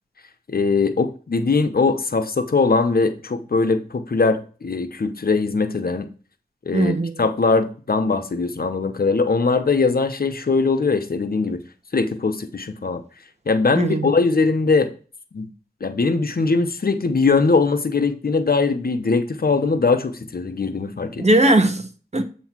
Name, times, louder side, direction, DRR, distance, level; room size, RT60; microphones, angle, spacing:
voice 1, 0.5-6.1 6.6-11.6 11.9-13.0 13.5-14.9 15.3-15.5 15.8-21.3, left 4 dB, 65° left, 0.9 m, -21 dB
voice 2, 6.7-7.2 13.7-14.1 21.2-22.2, right 1 dB, 40° right, 1.1 m, -19 dB
8.1 x 3.1 x 6.0 m
cardioid pair, 45°, 17 cm